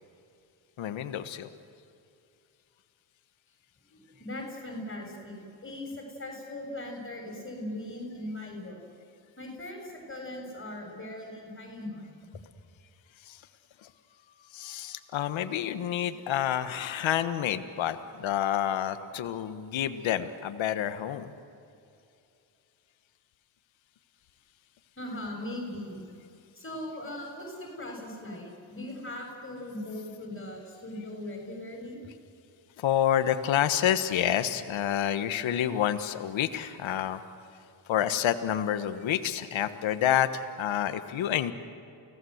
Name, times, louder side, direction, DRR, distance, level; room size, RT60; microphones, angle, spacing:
voice 1, 0.8-1.5 13.2-13.4 13.8-13.9 14.5-21.3 32.8-37.2 37.9-41.5, left 10 dB, 85° left, 10 dB, 1.4 m, -28 dB
voice 2, 3.9-8.8 9.4-12.2 25.0-26.0 26.5-32.1, left 1 dB, 25° left, 1 dB, 6.7 m, -39 dB
29.5 x 18.5 x 8.0 m, 2.6 s
cardioid pair, 75°, 45 cm